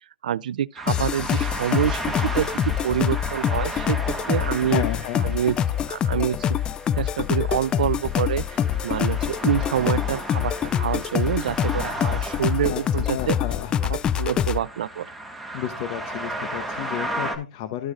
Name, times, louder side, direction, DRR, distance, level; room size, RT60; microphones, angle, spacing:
voice 1, 0.2-4.8 5.2-5.6 5.9-6.5 7.0-13.4 13.9-15.1, right 10 dB, 80° right, 0.4 m, -26 dB
sound 1, 0.8-17.4, right 1 dB, ahead, 1.7 m, -35 dB
sound 2, 0.9-14.6, left 9 dB, 20° left, 0.4 m, -25 dB
voice 2, 4.7-5.2 12.7-12.8 13.1-13.7 15.5-17.9, left 12 dB, 45° left, 0.9 m, -31 dB
13.5 x 6.2 x 2.4 m
hypercardioid pair, 145°, 4 cm